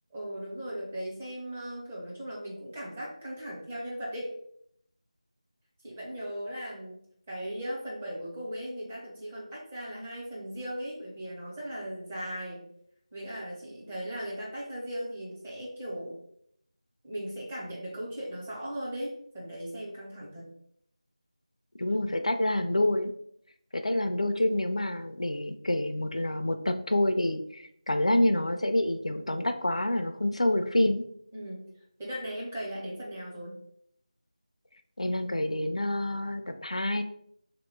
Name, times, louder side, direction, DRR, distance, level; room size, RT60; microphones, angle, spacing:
voice 1, 0.1-4.3 5.8-7.0 7.3-12.7 13.1-16.2 17.0-20.5 31.3-31.7 32.0-33.6, equal, 10° right, -6 dB, 0.6 m, -38 dB
voice 2, 21.8-23.1 23.7-31.0 35.0-37.0, left 1 dB, 65° left, 8 dB, 0.4 m, -27 dB
3.5 x 2.8 x 3.6 m, 0.69 s
figure-of-eight pair, 170°, 4 cm